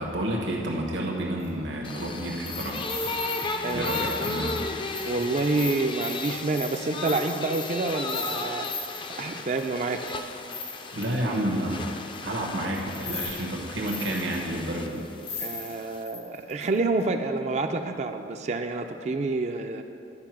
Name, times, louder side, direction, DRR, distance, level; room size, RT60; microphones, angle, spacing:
voice 1, 0.0-2.9 3.7-4.8 10.9-11.9 12.2-15.1, right 1 dB, 85° right, -2 dB, 1.2 m, -30 dB
sound 1, 1.4-1.5 2.4-9.1 9.6-9.7 10.1-11.4 12.1-12.2 12.7-13.4 13.7-14.5 15.0-15.1 15.2-16.7 17.0-17.1, left 5 dB, 75° left, 2.3 m, -38 dB
sound 2, 1.8-16.0, left 3 dB, 25° left, 0.4 m, -35 dB
voice 2, 3.6-4.3 5.1-10.2 15.4-19.8, right 3 dB, 40° right, 6 dB, 0.4 m, -28 dB
11.0 x 5.0 x 6.0 m, 2.6 s
head